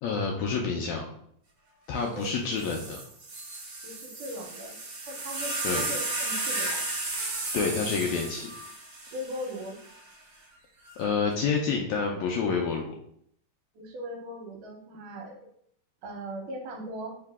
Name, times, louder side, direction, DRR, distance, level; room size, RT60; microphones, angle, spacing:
voice 1, 0.0-1.0 1.9-3.0 5.6-5.9 7.5-8.5 11.0-13.0, left 5 dB, 85° left, 1 dB, 1.6 m, -28 dB
sound 1, 2.2-2.3 2.6-10.0 10.9-11.3, right 2 dB, 50° right, 1.4 m, -34 dB
voice 2, 3.8-4.8 5.0-6.9 9.1-9.8 13.7-15.4 16.0-17.2, equal, 75° right, 1 dB, 2.3 m, -39 dB
4.8 x 2.8 x 3.4 m, 0.67 s
omnidirectional pair, 3.7 m